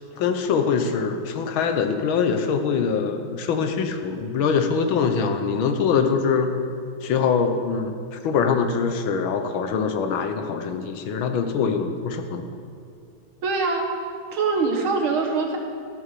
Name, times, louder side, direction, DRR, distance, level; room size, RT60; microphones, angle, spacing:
voice 1, 0.2-6.5 7.0-12.5, left 6 dB, 80° left, 7 dB, 1.7 m, -23 dB
voice 2, 13.4-15.6, right 4 dB, 80° right, 1 dB, 2.4 m, -24 dB
13.5 x 8.6 x 6.8 m, 2.5 s
omnidirectional pair, 2.2 m